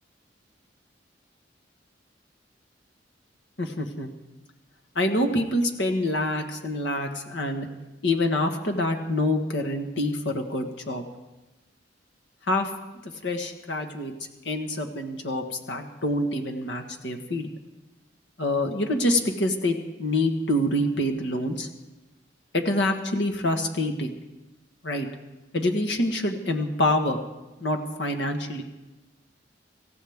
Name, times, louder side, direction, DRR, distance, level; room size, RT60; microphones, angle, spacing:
voice 1, 3.6-4.1 4.9-7.7 8.0-11.0 12.5-12.7 13.0-14.1 14.4-17.5 18.4-21.7 22.5-24.1 24.8-25.1 25.5-27.2 27.6-28.6, left 1 dB, 75° left, 4 dB, 1.5 m, -26 dB
26.5 x 15.0 x 3.6 m, 1.0 s
head